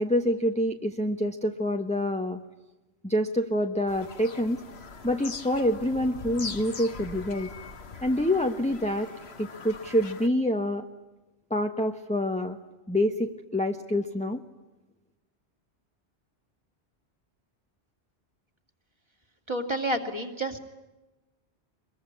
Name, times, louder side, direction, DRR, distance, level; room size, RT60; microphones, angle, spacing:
voice 1, 0.0-2.4 3.0-4.6 5.0-7.5 8.0-9.1 9.4-10.9 11.5-12.6 12.9-14.4, left 1 dB, 5° left, 4 dB, 1.2 m, -27 dB
Bird vocalization bird call bird song, 3.9-10.3, left 4 dB, 65° left, 1.7 m, -42 dB
voice 2, 19.5-20.6, right 1 dB, 25° right, 4 dB, 2.8 m, -29 dB
24.5 x 22.5 x 9.8 m, 1.1 s
omnidirectional pair, 1.1 m